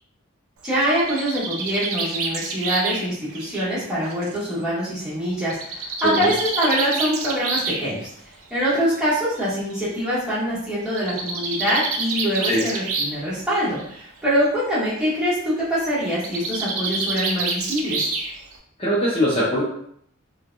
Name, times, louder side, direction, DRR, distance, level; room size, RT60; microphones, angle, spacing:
voice 1, 0.6-8.1 8.5-18.1, equal, 5° right, -11 dB, 1.4 m, -24 dB
Bird, 0.6-4.4 5.5-7.9 8.9-9.0 9.4-9.5 9.7-9.8 10.9-13.3 13.6-14.0 16.1-18.6, right 3 dB, 80° right, 0.5 m, -28 dB
voice 2, 18.8-19.6, equal, 30° left, -8 dB, 0.7 m, -21 dB
3.1 x 2.3 x 2.5 m, 0.67 s
head